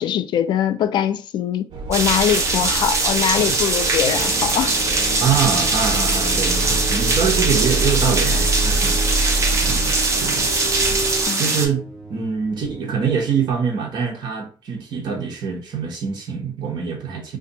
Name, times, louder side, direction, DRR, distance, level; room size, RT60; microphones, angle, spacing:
voice 1, 0.0-4.7 11.3-11.4, left 9 dB, 65° left, 0.3 m, -22 dB
sound 1, 1.7-11.2, right 2 dB, 80° right, 0.7 m, -26 dB
sound 2, 1.9-11.7, right 3 dB, 35° right, 0.7 m, -21 dB
sound 3, 4.1-13.5, right 2 dB, ahead, 1.0 m, -36 dB
voice 2, 5.2-10.5 11.3-11.8 12.1-17.4, right 6 dB, 60° right, 1.0 m, -24 dB
2.7 x 2.5 x 3.8 m
cardioid pair, 140°, 8 cm